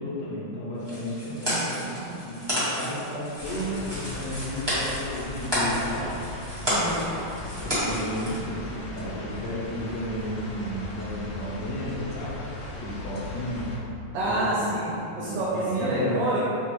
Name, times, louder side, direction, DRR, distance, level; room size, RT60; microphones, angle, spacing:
voice 1, 0.0-6.1 7.6-12.4 12.8-13.7 14.3-14.7 15.1-16.3, equal, 65° left, -7 dB, 1.3 m, -33 dB
sound 1, 0.8-8.4, equal, 15° right, 1.2 m, -30 dB
sound 2, 3.4-13.8, left 2 dB, 35° left, 1.1 m, -38 dB
voice 2, 6.7-7.1 14.1-16.4, right 1 dB, 70° right, -7 dB, 1.2 m, -28 dB
5.9 x 2.4 x 3.0 m, 2.9 s
omnidirectional pair, 2.2 m